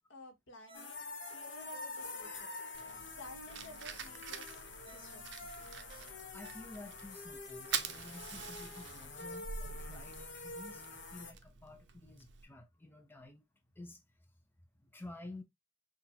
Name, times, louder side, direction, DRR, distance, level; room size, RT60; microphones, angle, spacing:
voice 1, 0.1-1.0 1.3-2.5 3.0-5.5, left 2 dB, 85° left, 1.5 m, -54 dB
sound 1, 0.7-11.3, left 3 dB, 70° left, 1.0 m, -47 dB
Ringtone, 0.7-2.9 3.3-3.4 4.8-7.1 7.5-7.6, right 1 dB, 25° right, 1.1 m, -57 dB
Fire, 2.7-12.4, right 7 dB, 65° right, 0.6 m, -46 dB
voice 2, 6.3-13.4 13.8-14.0 14.8-15.4, left 2 dB, 10° left, 0.7 m, -51 dB
5.9 x 2.5 x 2.7 m
head